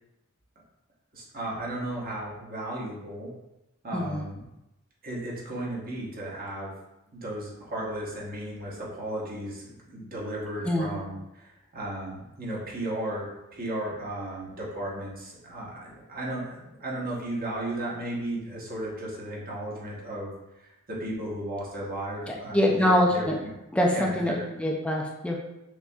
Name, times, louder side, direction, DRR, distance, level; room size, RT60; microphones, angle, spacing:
voice 1, 1.1-3.3 3.8-4.4 5.0-6.7 7.1-23.5 23.9-24.4, right 1 dB, 45° right, -4 dB, 1.0 m, -35 dB
voice 2, 3.9-4.2 10.6-10.9 22.3-23.3 23.7-25.4, left 1 dB, 5° left, -1 dB, 0.4 m, -24 dB
6.1 x 2.7 x 2.3 m, 0.93 s
head